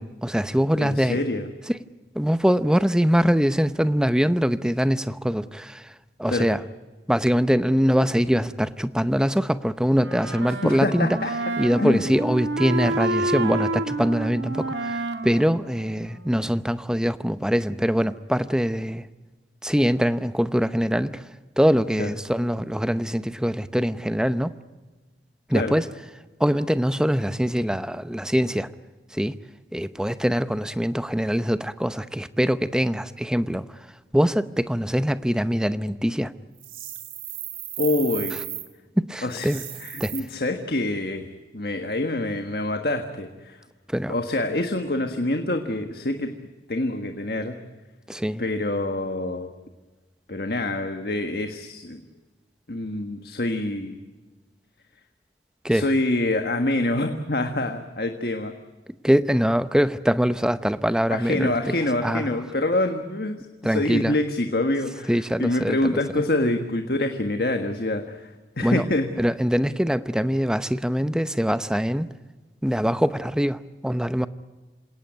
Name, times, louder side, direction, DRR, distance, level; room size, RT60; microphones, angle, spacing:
voice 1, 0.0-1.2 1.7-1.8 2.1-6.6 7.1-11.2 11.6-19.1 19.6-21.3 21.6-24.5 25.5-25.9 26.4-28.7 29.1-29.4 29.7-33.8 34.1-36.3 39.0-39.6 40.0-40.2 43.9-44.2 48.1-48.4 55.6-55.9 59.0-61.7 62.0-62.4 63.6-64.2 65.1-66.0 68.6-68.8 69.2-72.1 72.6-74.3, equal, 5° right, 0.7 m, -23 dB
voice 2, 0.8-1.5 6.3-6.5 10.6-11.3 11.8-12.1 22.0-22.1 25.5-25.8 37.8-38.4 39.2-39.5 39.8-41.2 41.5-43.6 44.1-46.3 46.7-47.5 48.4-49.5 50.3-52.0 52.7-54.0 55.7-58.5 61.1-68.3 68.6-69.1, left 2 dB, 60° left, 1.6 m, -26 dB
Wind instrument woodwind instrument, 10.0-16.6, right 2 dB, 90° right, 2.0 m, -29 dB
sound 1, 36.6-38.7 39.3-40.2, right 12 dB, 50° right, 3.1 m, -35 dB
28.0 x 18.0 x 9.4 m
head